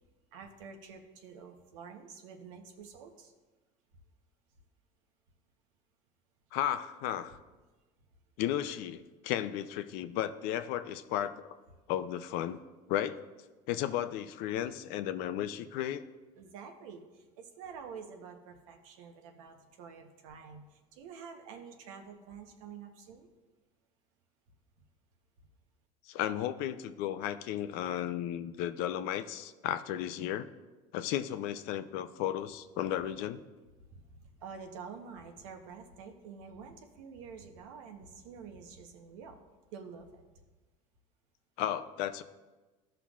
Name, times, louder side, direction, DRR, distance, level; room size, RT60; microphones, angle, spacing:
voice 1, 0.3-3.3 16.4-23.3 33.9-39.4 39.7-40.2, right 6 dB, 85° right, 5 dB, 1.0 m, -48 dB
voice 2, 6.5-7.4 8.4-11.4 11.9-12.6 12.9-13.2 13.7-16.0 26.1-30.5 30.9-33.4 41.6-42.2, left 11 dB, 70° left, 12 dB, 0.5 m, -34 dB
13.5 x 5.7 x 2.4 m, 1.2 s
supercardioid pair, 110°, 16 cm